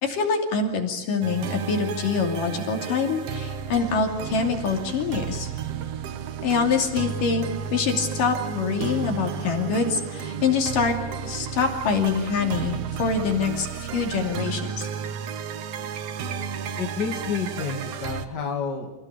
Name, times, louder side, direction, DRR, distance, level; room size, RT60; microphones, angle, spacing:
voice 1, 0.0-5.5 6.4-7.5 7.7-11.0 11.2-14.9, left 5 dB, 55° left, 3 dB, 4.2 m, -25 dB
sound 1, 1.2-18.3, right 7 dB, 85° right, 1.4 m, -33 dB
voice 2, 16.8-18.9, left 5 dB, 30° left, 2 dB, 2.5 m, -29 dB
29.0 x 16.5 x 8.6 m, 1.1 s
omnidirectional pair, 4.8 m